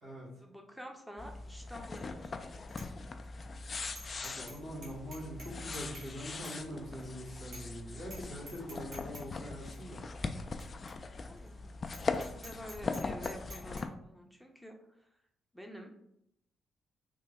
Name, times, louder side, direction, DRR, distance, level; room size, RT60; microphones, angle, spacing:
voice 1, 0.3-2.7 11.2-11.7 12.2-14.8 15.5-15.9, equal, 5° right, 3 dB, 0.7 m, -48 dB
sound 1, 1.2-13.9, left 4 dB, 45° left, 0.3 m, -40 dB
Bicycle bell, 2.0-2.3 2.7-2.9 3.2-3.3 3.9-4.6 4.8-6.1 6.4-6.6 7.0-7.1 7.5-7.8 8.0-8.2 8.5-9.2 9.7-9.8 10.6-10.7 10.9-11.0 11.4-11.5 11.9-13.8, right 1 dB, 55° right, 1.2 m, -49 dB
voice 2, 4.2-10.0, equal, 80° right, -7 dB, 1.4 m, -43 dB
3.4 x 2.2 x 3.4 m, 0.77 s
supercardioid pair, 55°, 0 cm